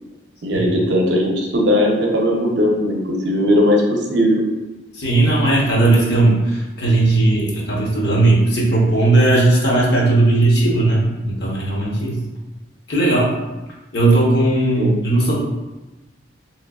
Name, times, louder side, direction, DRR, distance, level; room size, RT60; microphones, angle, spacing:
voice 1, 0.4-4.4 14.8-15.0, left 1 dB, 65° right, 0 dB, 0.6 m, -18 dB
voice 2, 5.0-12.2 12.9-13.3 13.9-15.4, right 2 dB, 55° left, -3 dB, 0.8 m, -16 dB
3.1 x 3.0 x 2.3 m, 1.1 s
head